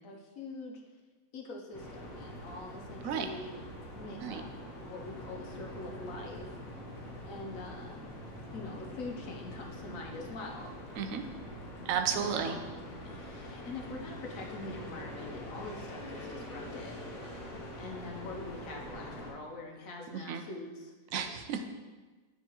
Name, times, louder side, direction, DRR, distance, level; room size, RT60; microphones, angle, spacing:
voice 1, 0.0-0.8 1.3-3.6 3.9-6.6 7.2-8.0 8.5-10.7 12.1-17.2 17.8-20.9, left 2 dB, 60° left, 1 dB, 1.1 m, -44 dB
sound 1, 1.7-19.3, left 1 dB, 40° left, 1.3 m, -44 dB
voice 2, 11.9-12.5 20.1-20.4 21.1-21.7, right 7 dB, 70° right, 6 dB, 0.9 m, -33 dB
9.4 x 3.6 x 2.9 m, 1.3 s
omnidirectional pair, 1.7 m